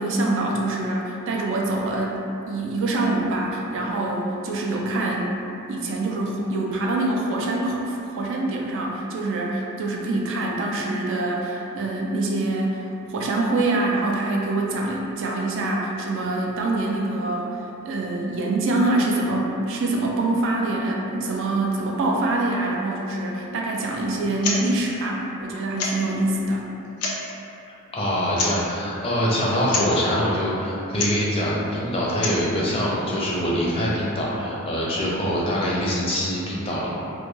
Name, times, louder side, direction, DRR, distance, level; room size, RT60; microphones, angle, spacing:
voice 1, 0.0-5.3 5.7-12.8 13.1-17.6 17.8-26.6, right 2 dB, 60° right, -2 dB, 0.3 m, -25 dB
sound 1, 24.3-24.6 24.9-25.0 25.8-26.1 26.8-27.3 28.3-28.7 29.7-29.9 30.9-31.2 32.0-32.5, left 4 dB, 80° left, 0.4 m, -27 dB
voice 2, 27.9-36.9, equal, 25° left, -6 dB, 0.4 m, -24 dB
2.2 x 2.1 x 3.0 m, 2.8 s
head